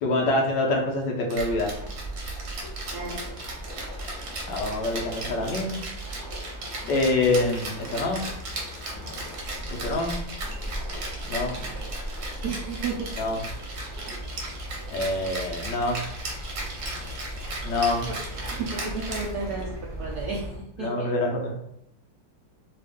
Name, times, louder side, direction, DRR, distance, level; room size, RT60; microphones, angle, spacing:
voice 1, 0.0-1.7 4.5-5.8 6.9-8.3 9.7-10.1 11.3-11.6 13.2-13.4 14.9-16.0 17.6-18.1 20.8-21.5, left 2 dB, 65° left, 0 dB, 1.2 m, -25 dB
sound 1, 1.3-20.6, equal, 20° left, 0.5 m, -37 dB
Rattle (instrument), 1.3-19.8, right 2 dB, 60° right, 1.1 m, -37 dB
voice 2, 2.9-3.4 12.4-13.1 18.1-21.1, right 4 dB, 85° right, -3 dB, 0.8 m, -33 dB
3.4 x 2.4 x 3.4 m, 0.78 s
omnidirectional pair, 2.3 m